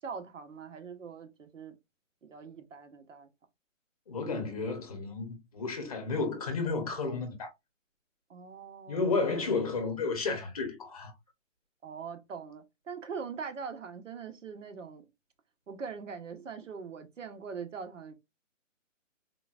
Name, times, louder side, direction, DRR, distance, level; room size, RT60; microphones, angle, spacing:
voice 1, 0.0-1.7 2.2-3.3 8.3-9.0 11.8-15.0 15.7-18.1, right 6 dB, 70° right, 1.0 m, -42 dB
voice 2, 4.1-7.5 8.9-11.1, left 4 dB, 30° left, 0.9 m, -32 dB
3.8 x 2.5 x 2.4 m
hypercardioid pair, 165°, 39 cm